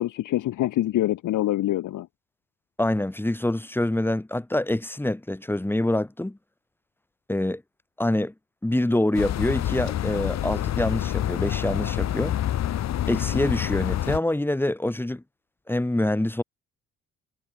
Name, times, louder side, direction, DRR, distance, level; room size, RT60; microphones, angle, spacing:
voice 1, 0.0-2.1, left 14 dB, 80° left, 3.4 m, -25 dB
voice 2, 2.8-6.4 7.3-7.6 8.0-8.3 8.6-12.3 13.1-15.2 15.7-16.4, left 1 dB, 5° left, 1.4 m, -25 dB
sound 1, 9.1-14.2, left 12 dB, 60° left, 1.1 m, -27 dB
cardioid pair, 90°, 30 cm